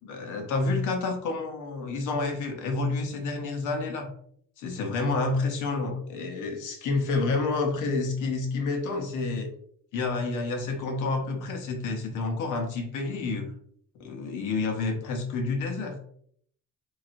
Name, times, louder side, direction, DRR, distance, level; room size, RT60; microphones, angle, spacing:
voice 1, 0.0-4.1 4.6-9.5 9.9-13.5 13.9-16.0, left 3 dB, 85° left, 3 dB, 0.9 m, -29 dB
3.7 x 3.2 x 2.5 m, 0.64 s
cardioid pair, 90°, 30 cm